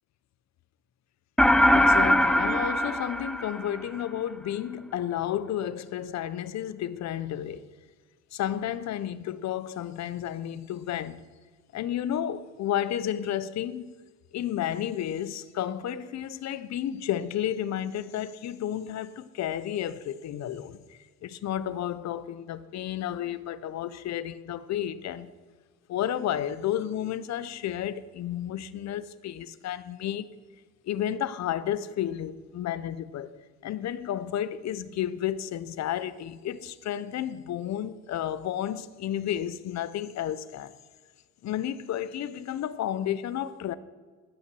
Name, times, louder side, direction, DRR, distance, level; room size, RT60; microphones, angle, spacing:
sound 1, 1.4-4.0, equal, ahead, 0.6 m, -21 dB
voice 1, 1.7-7.7 8.3-11.2 11.7-14.0 14.3-25.3 25.9-30.3 30.8-33.4 33.6-40.7 41.4-43.8, left 10 dB, 65° left, 0.6 m, -32 dB
12.5 x 5.7 x 6.1 m
cardioid pair, 90°, 30 cm